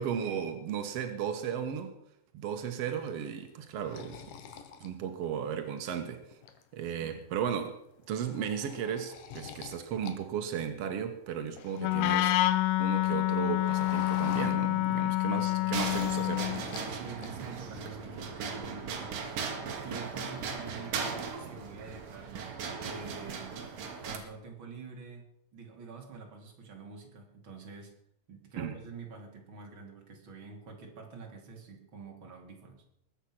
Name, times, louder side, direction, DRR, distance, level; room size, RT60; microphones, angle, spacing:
voice 1, 0.0-1.9 2.3-4.2 4.8-6.2 6.7-7.8 8.1-12.4 12.8-16.5 28.6-28.7, right 8 dB, 85° right, 1.3 m, -35 dB
sound 1, 3.1-5.8 6.2-7.0 7.4-7.6 7.9-10.2 10.4-12.5 12.9-15.2 15.5-16.9 17.2-17.8, left 7 dB, 65° left, 2.7 m, -46 dB
voice 2, 6.8-7.3 15.1-15.8 16.8-19.2 19.8-23.6 24.0-25.2 25.5-27.9 28.3-32.8, right 4 dB, 35° right, 3.1 m, -47 dB
Wind instrument woodwind instrument, 11.8-16.6, left 16 dB, 80° left, 2.6 m, -28 dB
sound 2, 15.7-24.2, right 5 dB, 60° right, 3.3 m, -38 dB
21.5 x 8.7 x 6.1 m
omnidirectional pair, 4.7 m